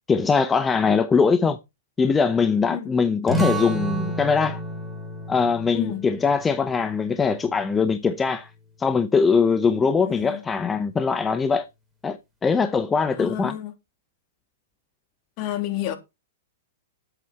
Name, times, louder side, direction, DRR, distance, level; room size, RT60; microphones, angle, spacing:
voice 1, 0.1-1.6 2.0-4.6 5.3-8.5 8.8-11.7 12.0-13.5, left 5 dB, 15° left, 0.9 m, -21 dB
sound 1, 3.3-8.5, right 1 dB, 5° right, 3.4 m, -31 dB
voice 2, 5.7-6.0 10.0-10.4 13.2-13.7 15.4-16.0, left 13 dB, 40° left, 3.2 m, -30 dB
10.5 x 8.3 x 4.4 m
hypercardioid pair, 135°, 0 cm